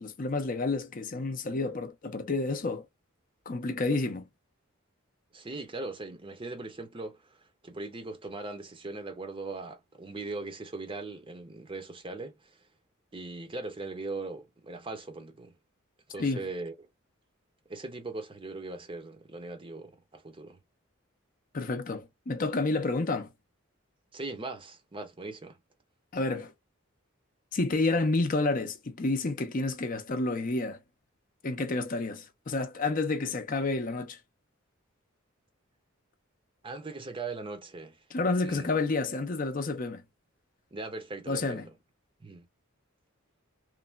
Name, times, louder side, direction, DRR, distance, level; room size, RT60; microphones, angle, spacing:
voice 1, 0.0-2.8 3.5-4.3 16.2-16.4 21.5-23.3 26.1-26.5 27.5-30.8 31.4-34.2 38.1-40.0 41.3-41.7, left 3 dB, 40° left, 0.5 m, -30 dB
voice 2, 5.3-7.2 7.6-12.4 13.1-15.5 16.1-16.7 17.7-20.6 24.1-25.6 36.6-38.0 38.4-38.7 40.7-41.7 42.2-42.5, right 3 dB, 25° right, 0.6 m, -39 dB
3.2 x 2.1 x 2.3 m
head